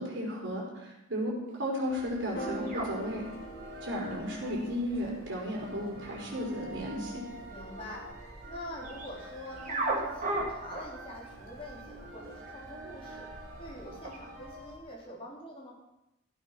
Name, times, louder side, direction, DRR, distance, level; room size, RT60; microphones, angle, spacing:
voice 1, 0.0-1.3 1.6-3.2 3.8-7.2, equal, 65° right, -2 dB, 4.7 m, -34 dB
sound 1, 1.5-14.2, right 2 dB, 40° right, 2.7 m, -41 dB
sound 2, 1.9-14.8, right 1 dB, 80° right, 3.3 m, -47 dB
Piano, 2.3-8.7, right 1 dB, 50° left, 3.0 m, -46 dB
voice 2, 7.5-8.1 8.5-13.3 13.6-15.7, left 1 dB, 30° left, -3 dB, 3.6 m, -45 dB
15.5 x 8.5 x 6.0 m, 0.92 s
head